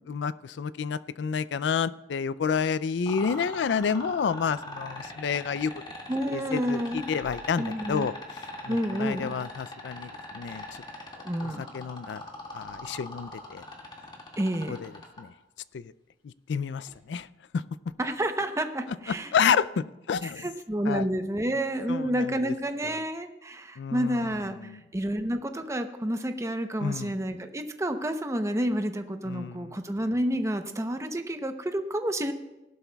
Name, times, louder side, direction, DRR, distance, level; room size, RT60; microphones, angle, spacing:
voice 1, 0.1-5.7 6.3-8.1 8.6-10.8 11.4-12.2 12.5-13.6 14.7-14.9 15.2-15.3 15.7-15.9 16.2-17.3 17.5-17.6 19.3-20.5 20.9-21.1 21.9-22.5 23.8-24.3 24.6-24.8 26.8-27.2 29.3-29.7, left 6 dB, 75° left, 18 dB, 0.4 m, -30 dB
sound 1, 3.1-15.2 16.9-17.0, left 2 dB, 25° left, 2.0 m, -40 dB
voice 2, 6.1-7.1 7.6-8.1 8.7-9.3 11.2-11.6 14.4-14.8 18.0-19.3 20.2-32.3, right 1 dB, 15° right, 7 dB, 0.7 m, -29 dB
17.5 x 11.5 x 2.3 m, 0.98 s
head